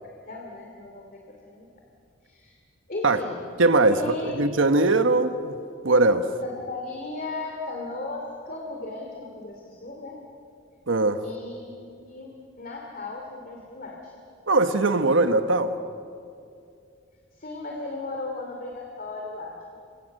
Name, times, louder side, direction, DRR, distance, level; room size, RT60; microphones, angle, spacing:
voice 1, 0.0-1.7 2.2-2.5 2.9-3.4 3.9-4.4 6.4-10.2 11.2-14.1 14.9-15.0 17.3-19.7, left 2 dB, 50° left, 0 dB, 2.8 m, -36 dB
voice 2, 3.6-5.5 5.8-6.2 10.9-11.2 14.5-15.7, right 2 dB, 90° right, 9 dB, 1.3 m, -20 dB
30.0 x 24.5 x 6.6 m, 2.4 s
head